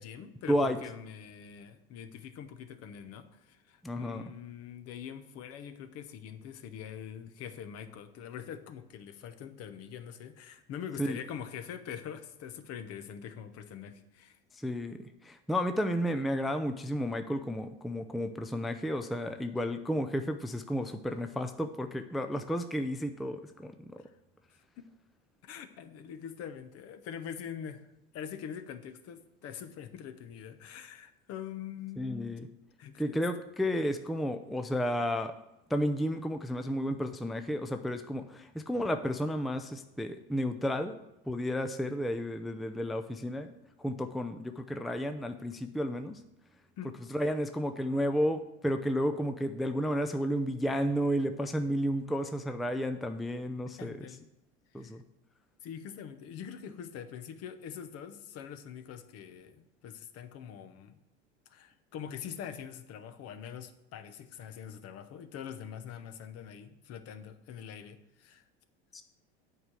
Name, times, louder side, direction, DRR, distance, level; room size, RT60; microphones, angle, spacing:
voice 1, 0.0-14.4 24.0-24.2 24.8-24.9 25.4-27.9 28.1-32.3 32.8-33.2 46.8-46.9 49.1-49.2 53.8-54.3 54.7-55.0 55.6-61.0 61.5-68.5, left 8 dB, 50° left, 10 dB, 0.9 m, -44 dB
voice 2, 3.8-4.2 11.0-11.2 14.5-24.0 32.0-32.5 33.0-35.3 35.7-40.9 41.3-43.5 43.8-46.2 47.1-54.0 54.7-55.0 68.9-69.0, equal, ahead, 7 dB, 0.4 m, -32 dB
8.0 x 4.9 x 7.4 m, 0.87 s
supercardioid pair, 100°, 31 cm